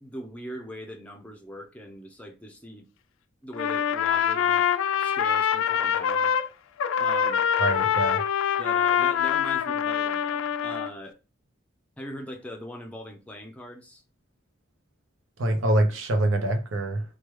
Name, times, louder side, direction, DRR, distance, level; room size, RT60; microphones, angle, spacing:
voice 1, 0.0-2.9 3.4-4.7 5.0-6.3 7.0-7.4 8.6-11.2 12.0-14.0, equal, 5° left, 0.5 m, -41 dB
Trumpet, 3.5-6.5 6.8-10.9, left 8 dB, 90° left, 0.3 m, -24 dB
voice 2, 7.6-8.2 15.4-17.0, right 1 dB, 90° right, 0.6 m, -24 dB
3.2 x 2.3 x 3.0 m
head